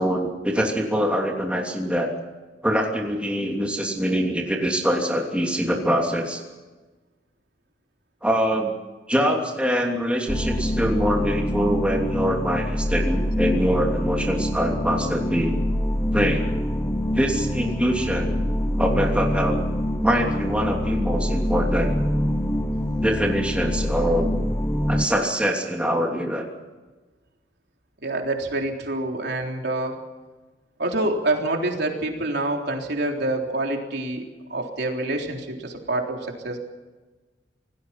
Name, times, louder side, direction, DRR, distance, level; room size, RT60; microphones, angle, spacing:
voice 1, 0.0-2.1 2.6-6.4 8.2-8.7 9.1-15.6 16.1-16.5 17.1-18.4 18.8-19.6 20.0-21.9 23.0-24.3 24.9-26.4, equal, 5° right, 0 dB, 3.0 m, -24 dB
sound 1, 10.3-25.1, left 1 dB, 15° left, 1.0 m, -25 dB
voice 2, 28.0-29.9 30.8-34.3 34.5-36.6, right 2 dB, 65° right, 1 dB, 3.7 m, -26 dB
28.0 x 18.5 x 5.9 m, 1.2 s
head